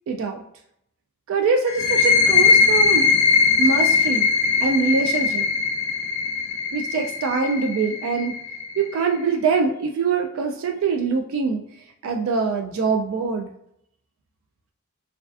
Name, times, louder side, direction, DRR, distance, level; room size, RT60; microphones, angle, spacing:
voice 1, 0.1-0.4 1.3-3.1 3.6-4.3 4.6-5.5 6.7-8.4 8.8-11.6 12.0-13.5, right 5 dB, 70° right, 4 dB, 0.3 m, -23 dB
sound 1, 1.7-9.1, left 5 dB, 70° left, 0.4 m, -20 dB
2.3 x 2.3 x 2.3 m, 0.75 s
head